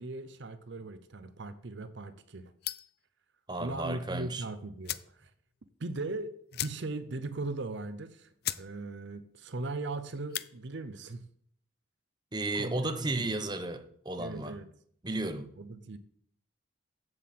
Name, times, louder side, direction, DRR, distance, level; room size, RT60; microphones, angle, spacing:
voice 1, 0.0-2.5 3.6-5.3 5.8-11.2 12.5-13.5 14.2-14.7 15.6-16.0, right 2 dB, 60° right, 0.6 m, -39 dB
sound 1, 2.6-3.0 4.3-4.4 4.8-5.2 5.5-5.6 5.9-6.0 6.5-7.1 7.5-7.6 8.0-8.1 8.4-8.7 9.0-9.4 10.1-10.5, left 13 dB, 50° left, 0.4 m, -37 dB
voice 2, 3.5-4.4 12.3-14.5 15.0-15.5, right 2 dB, 20° right, 0.8 m, -33 dB
7.8 x 7.5 x 7.6 m
head